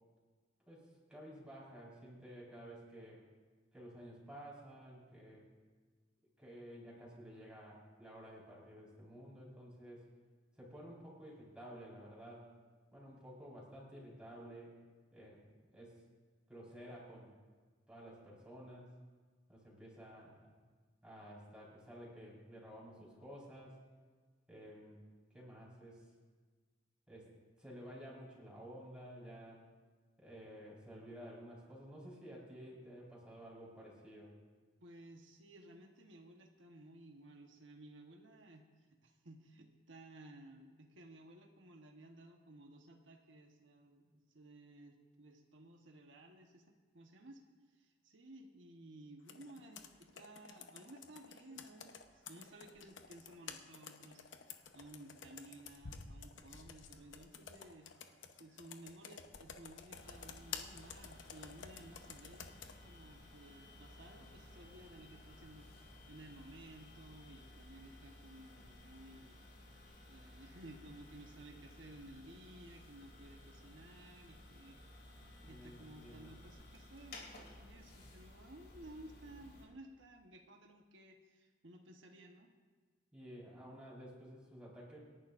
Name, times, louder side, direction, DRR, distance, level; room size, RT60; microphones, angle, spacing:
voice 1, 0.7-3.2 3.7-5.5 6.4-10.1 10.6-12.5 12.9-14.8 15.1-15.4 15.7-16.0 16.5-17.3 17.9-19.0 19.5-20.5 21.0-23.8 24.5-25.0 25.3-26.1 27.1-27.3 27.6-29.7 30.2-34.4 75.5-76.4 83.1-85.0, equal, 5° right, -6 dB, 4.6 m, -52 dB
voice 2, 34.8-38.7 39.0-54.3 54.7-57.9 58.4-69.4 70.1-74.8 75.4-77.2 77.6-82.5, right 1 dB, 85° right, 3 dB, 1.2 m, -56 dB
Computer keyboard, 49.3-62.8, left 6 dB, 85° left, 0.9 m, -52 dB
sound 1, 59.9-79.6, left 1 dB, 55° left, 2.8 m, -57 dB
27.0 x 11.0 x 2.6 m, 1.5 s
head